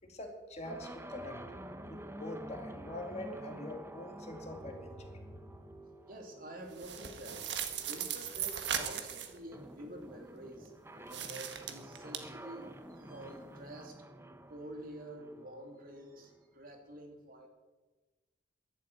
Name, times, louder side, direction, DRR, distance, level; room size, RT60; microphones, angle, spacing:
voice 1, 0.0-1.4 1.9-5.4, left 1 dB, 40° left, 3 dB, 2.4 m, -44 dB
sound 1, 0.6-16.4, right 1 dB, 15° right, 0.9 m, -50 dB
voice 2, 6.1-7.4 7.8-14.1 14.5-17.5, right 1 dB, 55° right, 2 dB, 2.9 m, -48 dB
sound 2, 6.7-9.4 11.1-12.2, right 8 dB, 75° right, 1.6 m, -38 dB
11.5 x 11.0 x 9.2 m, 1.2 s
head